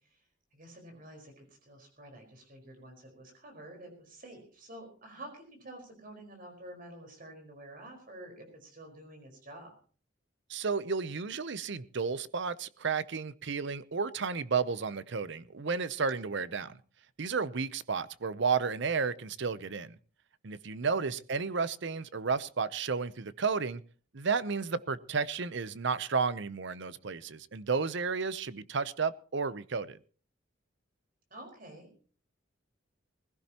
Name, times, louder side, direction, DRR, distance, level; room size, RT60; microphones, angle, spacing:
voice 1, 0.5-9.7 16.3-16.4 20.8-21.1 31.3-31.9, right 1 dB, 45° right, 4.7 m, -49 dB
voice 2, 10.5-16.8 17.2-20.0 20.4-23.8 24.1-30.0, right 5 dB, 60° right, 0.7 m, -32 dB
20.5 x 16.0 x 3.0 m
head